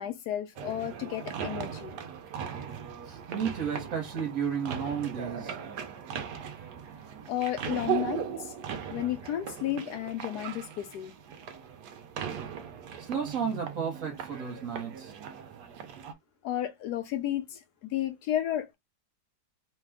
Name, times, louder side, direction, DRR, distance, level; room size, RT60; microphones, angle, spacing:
voice 1, 0.0-2.0 7.3-8.5 8.9-11.1 16.4-18.8, left 12 dB, 75° left, 0.9 m, -33 dB
sound 1, 0.6-16.1, right 7 dB, 70° right, 1.1 m, -38 dB
voice 2, 3.1-5.5 13.0-15.1, right 7 dB, 50° right, 1.3 m, -33 dB
3.3 x 2.2 x 3.5 m
omnidirectional pair, 2.1 m